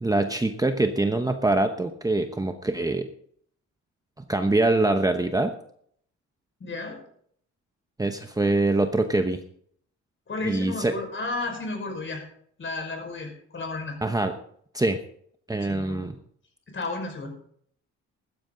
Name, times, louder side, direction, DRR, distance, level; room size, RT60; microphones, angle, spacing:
voice 1, 0.0-3.1 4.3-5.5 8.0-9.4 10.4-10.9 14.0-14.3 14.7-15.0 15.5-16.2, right 2 dB, 10° right, 6 dB, 0.9 m, -24 dB
voice 2, 6.6-7.0 10.3-12.2 12.6-14.0 15.6-16.1 16.7-17.3, left 2 dB, 40° left, 3 dB, 5.4 m, -33 dB
15.0 x 12.5 x 3.9 m, 0.64 s
cardioid pair, 90°, 30 cm